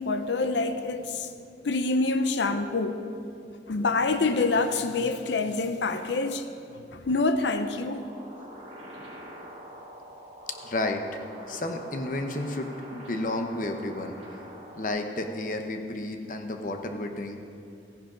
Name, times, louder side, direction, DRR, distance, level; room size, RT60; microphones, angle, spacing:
voice 1, 0.0-1.4 1.6-3.0 3.7-6.5 6.7-8.0, left 3 dB, 80° left, 0.6 m, -26 dB
sound 1, 7.9-14.9, equal, 40° right, 3.1 m, -45 dB
voice 2, 10.6-11.2 11.5-14.1 14.8-17.4, left 2 dB, 45° left, 0.8 m, -32 dB
15.0 x 10.5 x 3.9 m
head